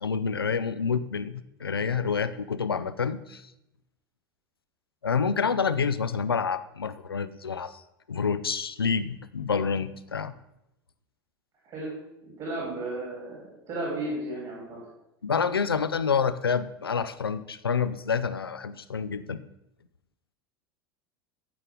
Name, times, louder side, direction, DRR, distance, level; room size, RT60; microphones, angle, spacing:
voice 1, 0.0-3.4 5.0-7.8 8.1-10.3 15.2-19.4, left 6 dB, 80° left, 13 dB, 0.5 m, -28 dB
voice 2, 12.2-14.8, right 2 dB, 35° right, -5 dB, 3.3 m, -34 dB
14.0 x 5.4 x 3.7 m, 0.85 s
figure-of-eight pair, 80°, 12 cm